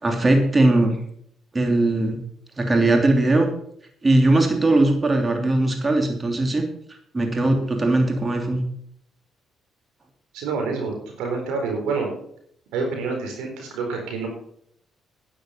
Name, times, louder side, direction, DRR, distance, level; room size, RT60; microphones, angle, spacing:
voice 1, 0.0-1.0 1.5-2.2 2.6-3.5 4.0-6.6 6.9-8.6, right 2 dB, 30° right, 3 dB, 3.0 m, -19 dB
voice 2, 10.3-12.1 12.7-14.3, right 4 dB, 85° right, 2 dB, 4.2 m, -27 dB
10.5 x 10.5 x 5.7 m, 0.67 s
supercardioid pair, 65°, 0 cm